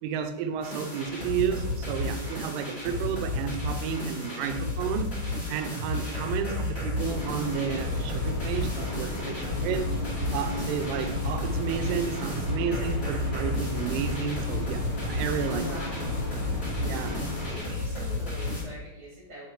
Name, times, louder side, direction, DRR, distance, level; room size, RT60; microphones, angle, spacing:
voice 1, 0.0-5.1 5.5-9.9 10.3-15.8 16.8-17.2, right 7 dB, 80° right, 7 dB, 3.2 m, -32 dB
sound 1, 0.6-18.6, left 2 dB, 25° left, 1.8 m, -32 dB
sound 2, 7.0-17.6, left 2 dB, 75° left, 5.0 m, -34 dB
voice 2, 15.5-16.5 17.4-19.5, right 1 dB, 40° right, -6 dB, 2.0 m, -43 dB
10.0 x 5.4 x 3.2 m, 0.98 s
omnidirectional pair, 5.8 m